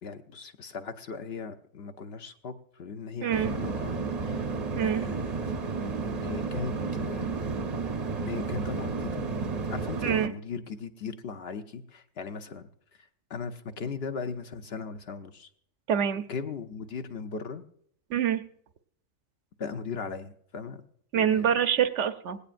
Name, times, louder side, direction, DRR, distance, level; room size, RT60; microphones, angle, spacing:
voice 1, 0.0-4.5 4.8-5.7 6.2-7.4 8.3-9.3 9.7-12.7 13.0-15.5 16.3-17.6 19.6-20.8 21.1-21.4, left 5 dB, 55° left, 7 dB, 0.9 m, -38 dB
voice 2, 3.2-3.5 4.7-5.1 10.0-10.3 15.9-16.2 18.1-18.4 21.1-22.4, right 8 dB, 70° right, 10 dB, 1.0 m, -25 dB
sound 1, 3.3-10.3, right 4 dB, 40° right, 0.7 m, -32 dB
19.5 x 16.5 x 2.5 m, 0.67 s
omnidirectional pair, 1.3 m